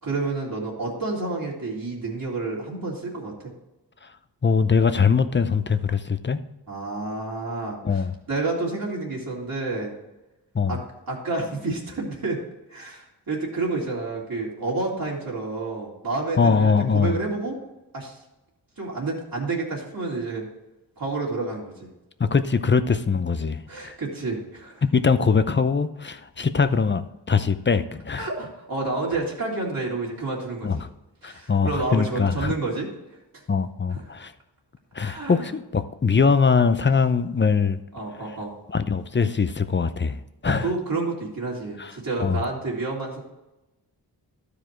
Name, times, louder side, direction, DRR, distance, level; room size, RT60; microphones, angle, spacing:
voice 1, 0.0-3.5 6.7-9.9 10.7-10.8 11.1-12.4 12.7-17.6 17.9-18.2 18.8-20.5 21.0-21.9 23.7-24.8 28.2-30.7 31.2-32.9 33.3-33.4 33.9-34.0 35.0-35.5 37.9-38.5 40.5-43.2, right 3 dB, 55° right, -4 dB, 2.6 m, -29 dB
voice 2, 4.4-6.4 7.8-8.1 10.5-10.8 16.4-17.1 22.2-24.0 24.9-28.3 30.6-30.9 31.2-32.5 33.5-34.3 34.9-37.8 38.7-40.7 41.8-41.9 42.2-42.4, left 5 dB, 25° left, 11 dB, 0.6 m, -22 dB
12.5 x 5.0 x 4.5 m, 0.99 s
cardioid pair, 70°, 41 cm